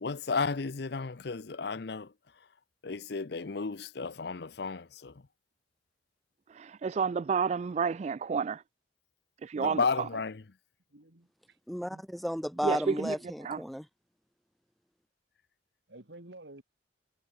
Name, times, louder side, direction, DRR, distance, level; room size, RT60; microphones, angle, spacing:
voice 1, 0.0-2.1 2.8-5.2 9.6-10.4, left 4 dB, 60° left, 0.7 m, -33 dB
voice 2, 6.5-8.6 9.4-10.1 12.6-13.2 13.4-13.6, right 5 dB, 40° right, 0.3 m, -30 dB
voice 3, 10.9-11.6 12.5-13.0 15.9-16.6, right 2 dB, 70° right, 2.7 m, -50 dB
voice 4, 11.7-13.8, equal, ahead, 0.9 m, -33 dB
head